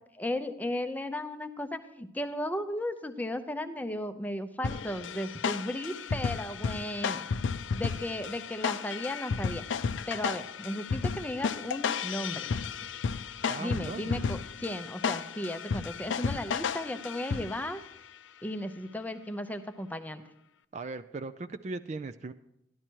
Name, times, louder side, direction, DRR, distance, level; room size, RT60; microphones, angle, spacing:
voice 1, 0.1-7.3 7.8-9.6 10.1-12.5 13.6-17.8 18.4-20.2, left 1 dB, 10° left, 9 dB, 0.6 m, -35 dB
sound 1, 4.6-17.8, left 6 dB, 85° left, 0.4 m, -33 dB
voice 2, 13.5-14.3 20.7-22.3, right 3 dB, 40° right, 9 dB, 0.4 m, -38 dB
13.5 x 11.0 x 4.5 m, 0.80 s
head